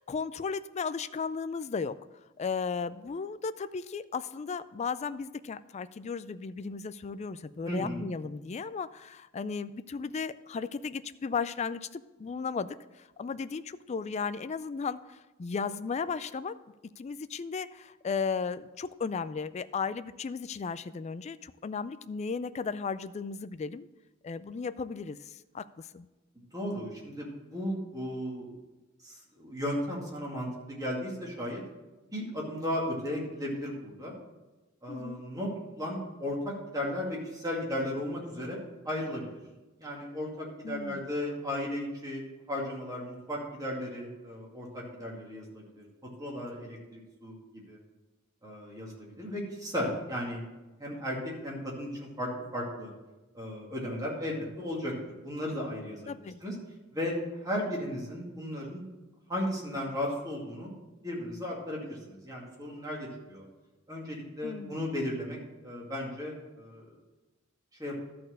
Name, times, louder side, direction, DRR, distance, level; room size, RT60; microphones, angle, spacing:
voice 1, 0.0-2.0 2.4-16.5 17.0-23.9 24.2-26.1 34.9-35.2 40.6-41.0 56.1-56.4 64.4-64.8, left 5 dB, 35° left, 13 dB, 0.3 m, -35 dB
voice 2, 7.7-8.0 26.5-28.6 29.0-31.6 32.1-34.1 34.8-35.5 35.8-39.3 39.8-45.9 46.2-47.4 47.7-47.8 48.4-50.4 50.8-52.9 53.3-56.1 56.4-56.5 56.9-57.1 57.4-58.8 59.3-60.7 61.0-63.4 63.9-65.4 65.6-66.9 67.8-68.0, left 1 dB, 20° right, -3 dB, 2.3 m, -35 dB
12.5 x 4.3 x 6.5 m, 1.1 s
head